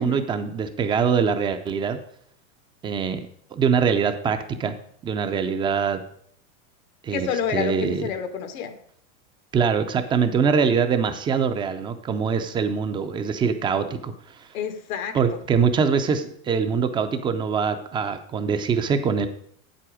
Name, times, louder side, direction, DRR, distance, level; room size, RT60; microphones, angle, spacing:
voice 1, 0.0-2.0 2.8-3.2 3.5-4.7 5.0-6.0 7.0-8.1 9.5-14.1 14.4-14.5 15.1-19.3, right 6 dB, 15° right, 8 dB, 0.3 m, -23 dB
voice 2, 7.1-8.7 14.5-15.4, left 7 dB, 85° left, 9 dB, 1.3 m, -29 dB
7.9 x 7.7 x 4.8 m, 0.65 s
supercardioid pair, 135°, 41 cm